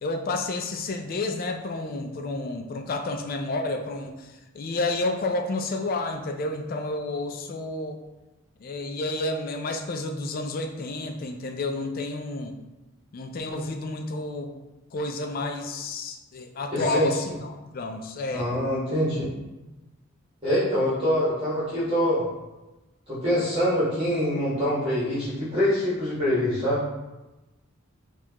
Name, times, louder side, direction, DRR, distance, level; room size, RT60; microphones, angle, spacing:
voice 1, 0.0-8.0 8.6-12.6 13.1-14.6 14.9-18.5, left 2 dB, 45° left, 5 dB, 0.3 m, -30 dB
voice 2, 16.7-17.1 18.4-19.2 20.4-22.2 23.1-26.8, equal, 25° right, -11 dB, 1.1 m, -24 dB
4.4 x 2.3 x 2.8 m, 1.1 s
head